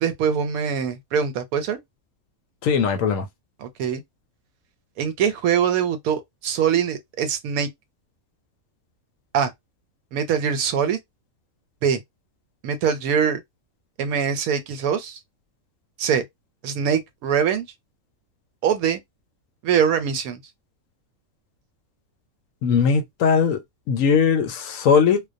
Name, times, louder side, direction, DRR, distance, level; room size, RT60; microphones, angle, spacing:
voice 1, 0.0-1.8 3.6-4.0 5.0-7.7 9.3-9.5 10.1-11.0 11.8-12.0 12.6-13.4 14.0-15.2 16.0-16.2 16.6-17.7 18.6-19.0 19.6-20.4, right 7 dB, 85° right, 1.0 m, -23 dB
voice 2, 2.6-3.2 22.6-23.6 23.9-25.2, left 6 dB, 70° left, 0.9 m, -19 dB
2.3 x 2.2 x 2.5 m
omnidirectional pair, 1.5 m